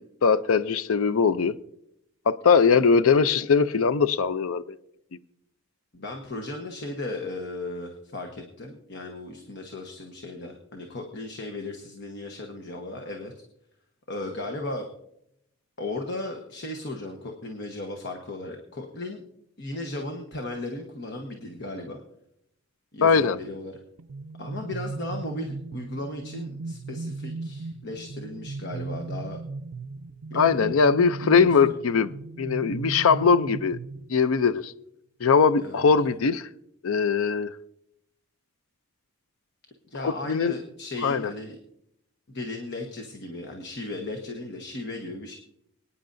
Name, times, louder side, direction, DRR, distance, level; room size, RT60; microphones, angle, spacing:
voice 1, 0.2-1.6 2.3-4.8 23.0-23.4 30.3-32.1 32.4-33.8 34.1-34.7 35.2-36.5 36.8-37.5 40.0-40.5 41.0-41.3, left 5 dB, 80° left, 0.5 m, -21 dB
voice 2, 5.9-13.3 14.1-14.9 15.8-19.2 19.6-22.0 22.9-23.8 24.4-29.4 30.3-30.7 31.2-31.7 35.6-35.8 39.9-41.6 42.3-45.4, left 2 dB, 55° left, 1.1 m, -36 dB
sound 1, 24.0-34.5, right 3 dB, 85° right, 0.4 m, -36 dB
24.5 x 9.6 x 2.6 m
head